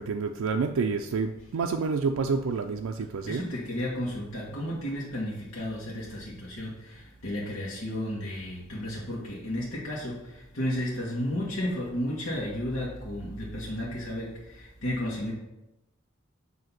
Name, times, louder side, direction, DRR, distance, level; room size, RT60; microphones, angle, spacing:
voice 1, 0.0-3.5, right 4 dB, 75° right, 4 dB, 0.4 m, -28 dB
voice 2, 3.3-15.3, left 1 dB, 70° left, -6 dB, 1.5 m, -33 dB
7.6 x 2.8 x 5.8 m, 0.94 s
head